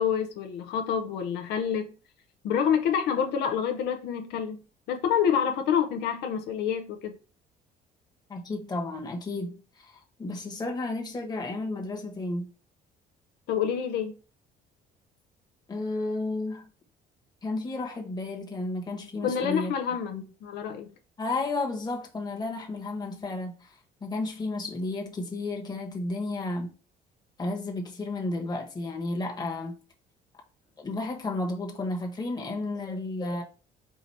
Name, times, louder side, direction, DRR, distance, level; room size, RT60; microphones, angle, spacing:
voice 1, 0.0-1.9 2.4-4.6 4.9-7.2 13.5-14.1 19.2-20.9, left 8 dB, 80° left, 0.6 m, -27 dB
voice 2, 8.3-12.5 15.7-16.7 17.4-19.7 20.1-20.2 21.2-26.7 27.4-29.7 30.8-33.4, left 2 dB, 25° left, 1.2 m, -32 dB
4.9 x 2.6 x 4.2 m
cardioid pair, 110°, 17 cm